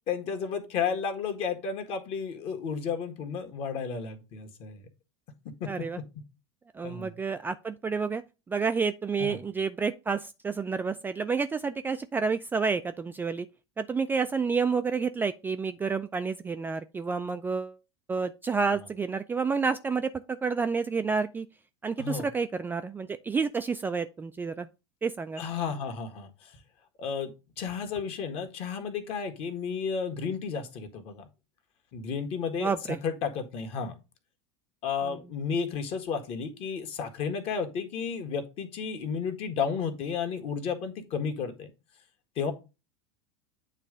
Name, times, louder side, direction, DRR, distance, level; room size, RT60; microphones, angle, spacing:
voice 1, 0.1-4.8 5.6-5.7 6.8-7.1 9.2-9.4 22.0-22.3 25.4-26.5 27.0-31.3 31.9-33.9 34.8-41.7 42.4-42.5, left 6 dB, 40° left, 1.5 m, -32 dB
voice 2, 5.7-6.0 6.7-8.2 8.5-13.5 13.8-17.8 18.1-21.5 21.8-24.7 25.0-25.4 32.6-33.0 35.1-35.2, right 5 dB, 15° right, 0.4 m, -29 dB
9.1 x 3.2 x 5.0 m
figure-of-eight pair, 85°, 15 cm